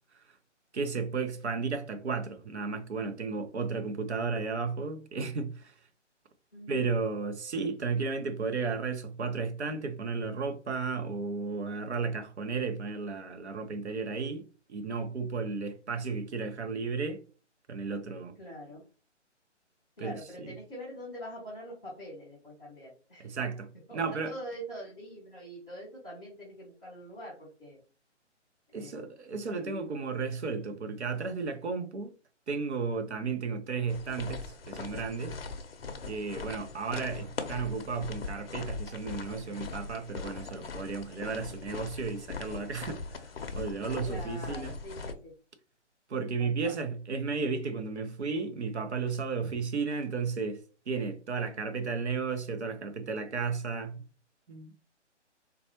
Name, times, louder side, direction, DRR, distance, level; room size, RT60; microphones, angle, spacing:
voice 1, 0.7-5.7 6.7-17.2 17.7-18.3 20.0-20.1 20.4-20.5 23.2-24.3 28.7-32.1 32.5-35.4 36.1-43.2 43.5-44.7 46.1-54.0 54.5-54.7, right 4 dB, 65° right, 0.8 m, -33 dB
voice 2, 6.5-7.0 18.4-18.8 20.0-23.3 23.9-27.8 28.7-29.1 29.5-29.9 33.3-33.4 36.9-37.3 44.0-45.3 46.4-46.8, equal, 5° left, 0.5 m, -44 dB
sound 1, 33.9-45.1, left 4 dB, 55° left, 0.6 m, -40 dB
4.0 x 2.3 x 2.9 m
figure-of-eight pair, 150°, 36 cm